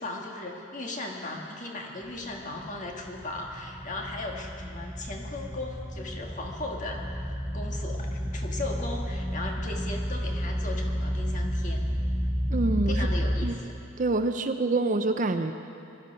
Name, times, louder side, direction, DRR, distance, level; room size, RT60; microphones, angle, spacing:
voice 1, 0.0-11.8 12.9-13.7, left 2 dB, 35° left, 0 dB, 1.6 m, -37 dB
sound 1, 2.0-13.4, equal, 15° left, 3.8 m, -31 dB
voice 2, 12.5-13.1 13.4-13.5 14.0-15.5, right 2 dB, 35° right, 8 dB, 0.5 m, -26 dB
19.5 x 12.5 x 5.3 m, 2.7 s
head